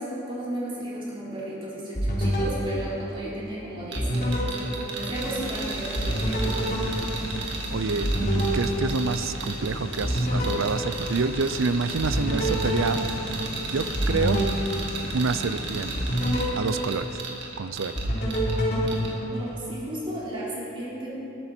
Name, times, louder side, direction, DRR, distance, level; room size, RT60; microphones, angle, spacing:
voice 1, 0.0-6.6 19.3-21.2, right 1 dB, 25° right, -8 dB, 4.1 m, -34 dB
sound 1, 2.0-3.6 4.0-5.6 6.0-9.6 10.0-11.6 12.0-15.5 16.0-17.6 18.0-19.9, equal, 50° left, 3.6 m, -28 dB
sound 2, 3.9-18.6 18.9-19.1, right 4 dB, 60° right, 2.1 m, -35 dB
sound 3, 5.1-16.5, left 1 dB, 90° left, 1.7 m, -38 dB
voice 2, 7.7-13.4 13.7-14.5 15.1-16.1 16.6-18.0, right 4 dB, 75° right, 13 dB, 0.6 m, -28 dB
20.5 x 13.0 x 4.5 m, 2.9 s
head